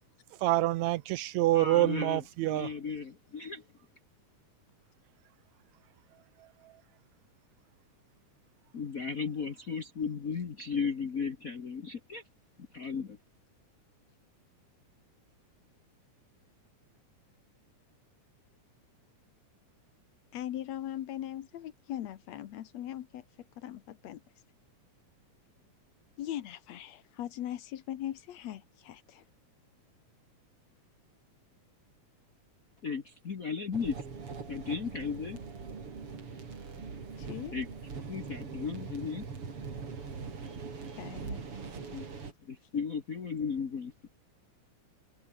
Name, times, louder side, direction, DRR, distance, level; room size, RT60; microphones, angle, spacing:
voice 1, 0.4-2.7, right 16 dB, 80° right, 1.7 m, -26 dB
voice 2, 1.5-3.6 8.7-12.2 12.7-13.2 32.8-34.0 34.5-35.4 37.5-37.7 38.1-39.3 41.9-42.0 42.5-44.1, left 5 dB, 45° left, 1.1 m, -35 dB
voice 3, 20.3-23.2 23.6-24.2 26.2-29.2 37.2-37.5 41.0-41.4, left 12 dB, 65° left, 2.2 m, -40 dB
sound 1, 33.7-42.3, right 5 dB, 45° right, 4.3 m, -42 dB
omnidirectional pair, 3.5 m